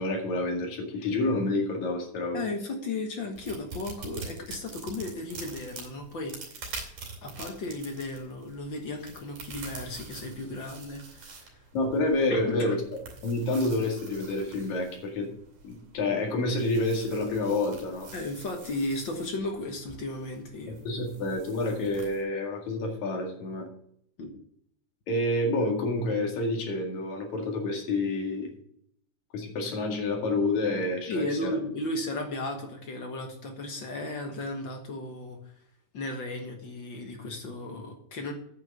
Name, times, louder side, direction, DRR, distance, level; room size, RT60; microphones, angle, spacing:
voice 1, 0.0-2.4 11.7-12.8 13.2-15.3 15.6-18.1 20.7-23.7 25.1-28.5 29.3-31.5, left 2 dB, 70° left, 1 dB, 3.4 m, -28 dB
voice 2, 2.3-6.8 7.2-11.6 12.3-12.8 18.1-20.8 24.2-24.3 31.1-35.4 35.9-38.3, left 2 dB, 50° left, 3 dB, 1.7 m, -35 dB
sound 1, 3.3-22.2, right 4 dB, 80° right, 4.1 m, -46 dB
9.3 x 6.0 x 7.3 m, 0.68 s
omnidirectional pair, 3.5 m